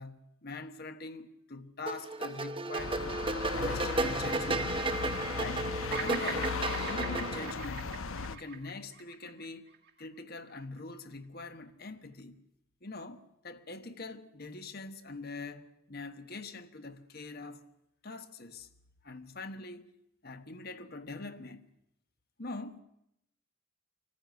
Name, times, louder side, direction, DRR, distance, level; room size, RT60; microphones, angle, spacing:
voice 1, 0.0-3.3 3.5-4.8 5.4-6.6 6.8-7.9 8.3-9.7 10.0-12.3 12.8-17.6 18.0-18.7 19.0-19.9 20.2-21.6 22.4-22.8, left 3 dB, 45° left, 1.3 m, -43 dB
sound 1, 1.9-7.5, right 2 dB, 25° right, 0.9 m, -34 dB
sound 2, 2.8-8.4, left 4 dB, 75° left, 0.9 m, -37 dB
Bird vocalization bird call bird song, 5.9-10.2, right 6 dB, 50° right, 1.5 m, -41 dB
25.0 x 14.5 x 9.3 m
head